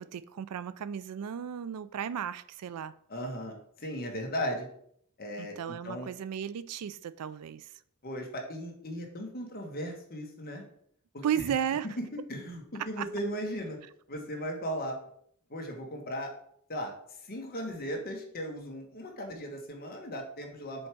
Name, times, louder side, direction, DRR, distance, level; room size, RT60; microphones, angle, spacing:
voice 1, 0.0-2.9 5.4-7.7 11.2-11.9 13.0-13.1, right 8 dB, 85° right, 0.4 m, -34 dB
voice 2, 3.1-4.7 5.2-6.1 8.0-10.6 11.1-11.4 12.1-13.8 14.1-15.0 15.5-16.3 16.7-20.9, equal, 45° left, 1.3 m, -37 dB
5.2 x 4.6 x 6.1 m
head